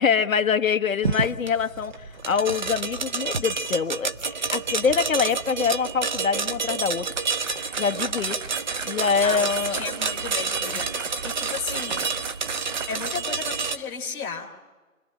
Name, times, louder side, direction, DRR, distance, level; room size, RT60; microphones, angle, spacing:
voice 1, 0.0-7.1 7.8-8.5 8.8-9.8 10.6-10.8, left 6 dB, 70° left, 1.1 m, -25 dB
sound 1, 1.0-13.8, right 4 dB, 35° right, 0.8 m, -29 dB
sound 2, 7.0-13.4, right 6 dB, 60° right, 1.1 m, -36 dB
voice 2, 9.2-12.0 12.9-14.5, left 5 dB, 5° left, 1.1 m, -34 dB
27.5 x 21.0 x 9.9 m
hypercardioid pair, 160°, 42 cm